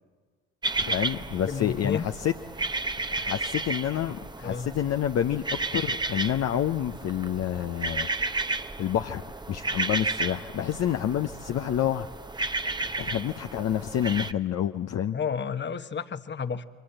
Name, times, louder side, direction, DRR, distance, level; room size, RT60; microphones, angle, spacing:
sound 1, 0.6-14.3, right 3 dB, 15° right, 0.9 m, -33 dB
voice 1, 0.8-2.3 3.1-8.1 8.8-12.1 13.0-15.2, left 10 dB, 50° left, 6 dB, 0.8 m, -28 dB
voice 2, 1.5-2.0 4.4-4.7 15.1-16.7, left 6 dB, 35° left, 11 dB, 1.2 m, -31 dB
28.5 x 24.0 x 8.0 m, 1.5 s
hypercardioid pair, 60°, 32 cm